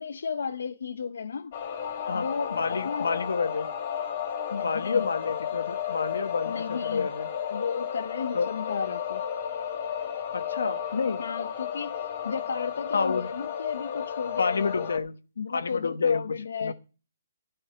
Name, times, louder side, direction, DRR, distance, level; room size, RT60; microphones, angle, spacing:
voice 1, 0.0-1.5 2.1-3.1 4.5-5.1 6.4-7.1 7.5-9.2 11.2-14.9 15.4-16.7, left 6 dB, 75° left, 0.8 m, -33 dB
sound 1, 1.5-15.0, left 8 dB, 40° left, 2.4 m, -33 dB
voice 2, 2.1-3.7 4.6-7.3 8.3-8.5 10.3-11.2 12.9-13.3 14.4-15.1 15.5-16.2 16.6-16.7, left 5 dB, 90° left, 1.2 m, -29 dB
12.5 x 5.4 x 8.4 m
hypercardioid pair, 165°, 0 cm